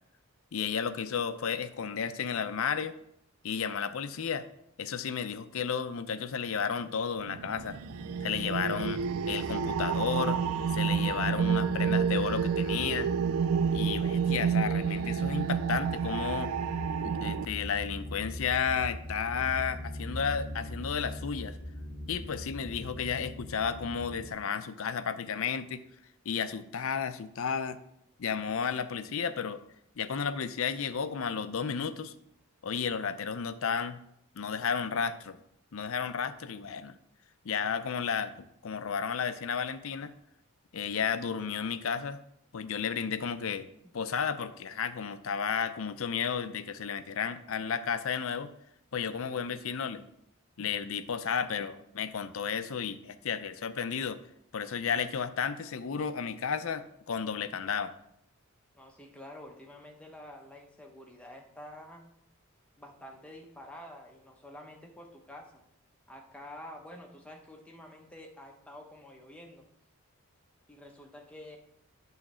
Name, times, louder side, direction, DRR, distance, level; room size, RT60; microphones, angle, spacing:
voice 1, 0.5-2.9 3.4-4.5 4.8-7.8 8.2-10.4 10.7-13.1 13.7-16.5 17.0-21.6 22.1-25.8 26.3-27.8 28.2-29.6 30.0-32.1 32.6-34.0 34.4-35.4 35.7-37.0 37.4-40.1 40.7-42.2 42.5-43.7 43.9-48.5 48.9-50.1 50.6-54.2 54.5-57.9, left 6 dB, 65° left, 11 dB, 0.5 m, -33 dB
sound 1, 7.3-17.4, right 6 dB, 75° right, 0.3 m, -29 dB
sound 2, 7.5-24.3, left 1 dB, 20° right, 2.6 m, -42 dB
voice 2, 58.7-62.1 62.8-65.6 66.1-69.6 70.7-71.6, left 1 dB, 5° left, 1 dB, 0.9 m, -48 dB
8.7 x 3.2 x 6.1 m, 0.75 s
head